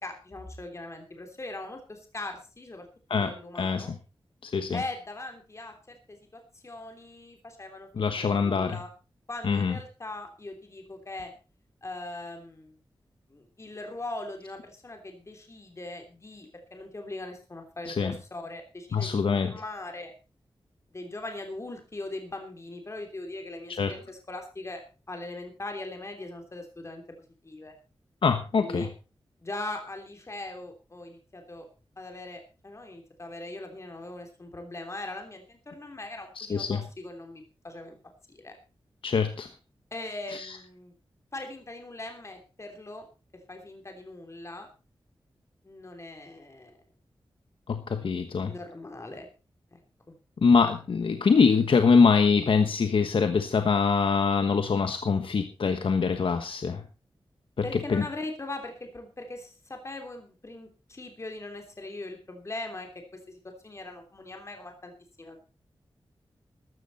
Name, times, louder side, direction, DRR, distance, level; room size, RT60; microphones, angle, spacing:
voice 1, 0.0-3.9 4.7-8.9 9.3-11.3 11.8-12.8 13.3-20.1 20.9-24.8 25.1-27.0 27.4-27.7 28.5-28.9 29.4-31.7 32.0-38.0 38.3-38.6 39.9-40.9 41.3-43.1 43.5-44.7 45.6-46.8 48.4-49.3 49.7-49.8 57.6-62.9 63.3-64.9 65.2-65.4, left 2 dB, 35° left, 4 dB, 3.2 m, -40 dB
voice 2, 3.1-3.9 4.4-4.8 8.0-8.8 9.4-9.8 17.9-18.1 18.9-19.5 23.8-23.9 28.2-28.9 36.4-36.8 39.0-39.5 40.3-40.6 47.7-48.5 50.4-56.8 57.6-58.0, left 5 dB, 75° left, 8 dB, 1.2 m, -24 dB
14.5 x 12.5 x 4.2 m, 0.33 s
wide cardioid pair, 125°, 9 cm